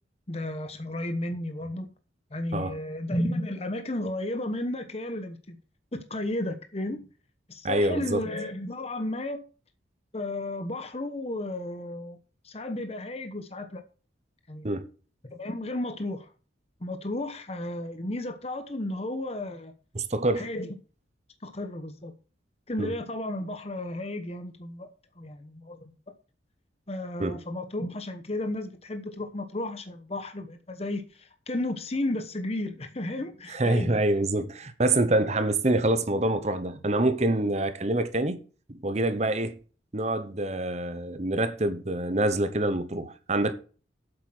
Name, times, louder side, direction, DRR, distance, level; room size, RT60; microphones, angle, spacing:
voice 1, 0.3-1.9 2.3-5.6 5.9-7.1 7.5-9.4 10.1-12.2 12.4-13.8 14.5-14.7 15.4-16.3 16.8-19.7 20.4-20.7 21.4-22.1 22.7-24.9 25.2-25.9 26.9-34.0, left 1 dB, 35° left, 1.0 m, -33 dB
voice 2, 7.6-8.2 14.6-14.8 19.9-20.5 22.8-22.9 27.2-27.4 33.5-38.4 38.7-39.6 39.9-43.5, right 2 dB, 35° right, 0.9 m, -26 dB
8.3 x 7.8 x 6.1 m
head